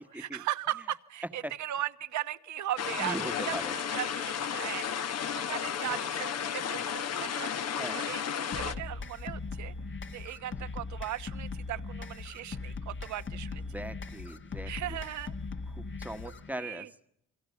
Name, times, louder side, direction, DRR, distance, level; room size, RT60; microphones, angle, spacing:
voice 1, 0.0-3.2 3.4-3.6 3.9-7.7 7.9-9.7 10.1-13.6 14.7-15.3 16.2-16.9, right 13 dB, 70° right, 13 dB, 1.1 m, -38 dB
sound 1, 2.8-8.7, left 8 dB, 55° left, 1.2 m, -33 dB
voice 2, 3.0-3.7 7.8-8.0 13.7-15.0 15.7-16.9, right 1 dB, 5° right, 8 dB, 1.3 m, -39 dB
sound 2, 8.5-16.5, left 4 dB, 40° left, 1.4 m, -39 dB
28.0 x 23.5 x 7.0 m, 0.76 s
cardioid pair, 90°, 30 cm